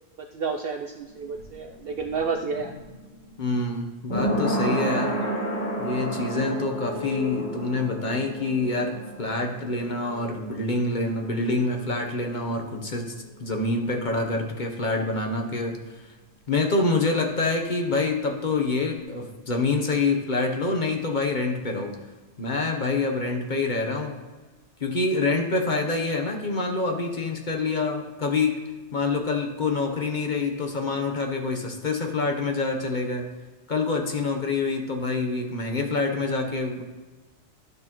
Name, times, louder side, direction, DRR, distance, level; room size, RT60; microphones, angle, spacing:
voice 1, 0.3-2.7, right 5 dB, 65° right, 5 dB, 0.6 m, -30 dB
sound 1, 1.1-12.5 12.8-12.9, equal, 65° left, 3.5 m, -31 dB
voice 2, 3.4-5.1 5.8-13.1 13.4-16.0 16.5-22.0 22.4-24.2 24.8-28.6 28.9-33.3 33.7-36.8, left 3 dB, 40° left, 3 dB, 0.9 m, -26 dB
12.0 x 6.4 x 2.9 m, 1.3 s
omnidirectional pair, 1.4 m